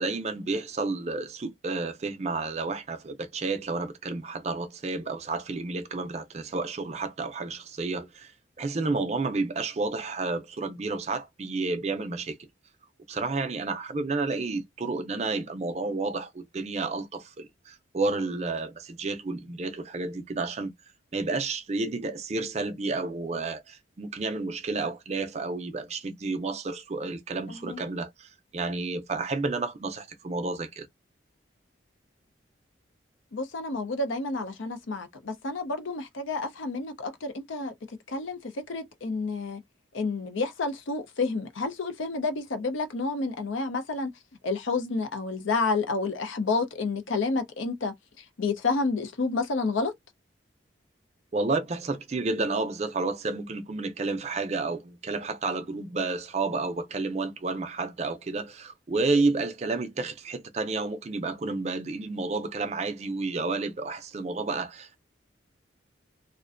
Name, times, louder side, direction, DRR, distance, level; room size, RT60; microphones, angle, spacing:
voice 1, 0.0-8.3 8.6-12.4 13.1-20.7 21.1-30.9 51.3-65.0, right 3 dB, 35° right, 0.4 m, -31 dB
voice 2, 27.5-27.8 33.3-37.7 38.1-39.6 39.9-44.1 44.4-47.9 48.4-49.9, left 3 dB, 85° left, 0.6 m, -30 dB
2.4 x 2.1 x 2.4 m
head